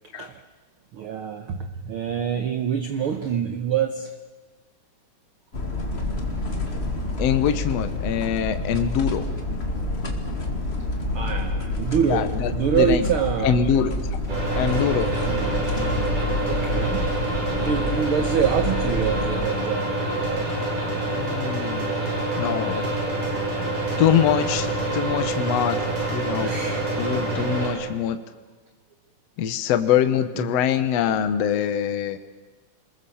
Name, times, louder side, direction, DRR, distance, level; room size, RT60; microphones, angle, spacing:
voice 1, 0.9-4.1 9.7-9.8 11.0-13.9 15.3-15.7 16.5-17.1 17.5-19.9 20.2-20.5 26.2-26.9 30.4-30.5, right 8 dB, 60° right, 8 dB, 1.5 m, -26 dB
sound 1, 5.5-19.5, left 2 dB, 20° left, 2.1 m, -28 dB
voice 2, 7.2-9.2 12.1-13.1 13.4-13.9 14.6-15.1 21.2-21.9 22.4-22.9 24.0-24.7 24.9-26.5 27.0-28.2 29.4-32.2, left 9 dB, 60° left, 9 dB, 2.1 m, -23 dB
sound 2, 14.3-27.7, right 2 dB, 85° right, 8.5 m, -26 dB
28.0 x 21.0 x 7.1 m, 1.3 s
omnidirectional pair, 3.6 m